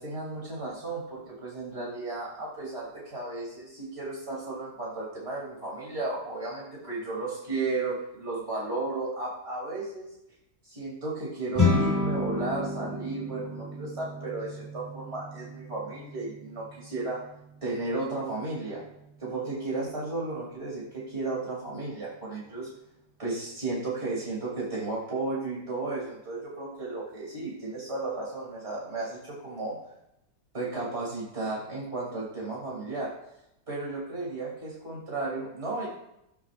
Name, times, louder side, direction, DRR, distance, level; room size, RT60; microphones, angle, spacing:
voice 1, 0.0-10.1 10.6-17.2 17.6-18.8 19.2-22.7 23.2-29.8 30.5-33.1 33.7-35.9, right 3 dB, 40° right, -5 dB, 3.2 m, -34 dB
sound 1, 11.6-21.0, left 3 dB, 10° left, 2.1 m, -33 dB
19.0 x 7.0 x 2.5 m, 0.83 s
omnidirectional pair, 1.8 m